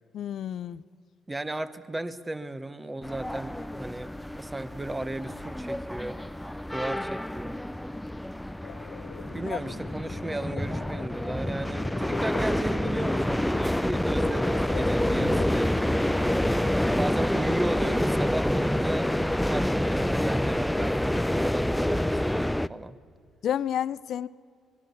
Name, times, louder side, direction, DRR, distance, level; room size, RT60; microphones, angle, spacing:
voice 1, 0.1-0.8 9.5-9.6 23.4-24.3, left 10 dB, 65° left, 17 dB, 0.6 m, -30 dB
voice 2, 1.3-4.1 4.4-6.2 6.7-7.6 9.3-16.0 16.9-23.0, right 2 dB, 15° right, 12 dB, 1.1 m, -35 dB
sound 1, 3.0-22.7, left 1 dB, 5° left, 0.5 m, -27 dB
sound 2, 8.6-16.9, left 9 dB, 85° left, 1.1 m, -43 dB
25.0 x 20.5 x 7.1 m, 2.3 s
cardioid pair, 100°, 0 cm